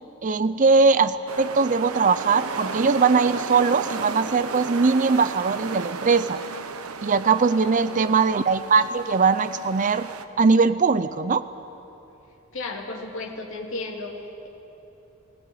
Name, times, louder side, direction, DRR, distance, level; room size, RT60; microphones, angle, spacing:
voice 1, 0.2-6.4 7.0-10.1 10.4-11.4, right 4 dB, 35° right, 12 dB, 0.5 m, -20 dB
sound 1, 1.3-10.2, right 4 dB, 80° right, 1.0 m, -34 dB
voice 2, 7.6-8.2 12.5-14.5, left 2 dB, 60° left, -1 dB, 2.6 m, -35 dB
19.0 x 18.0 x 9.8 m, 3.0 s
head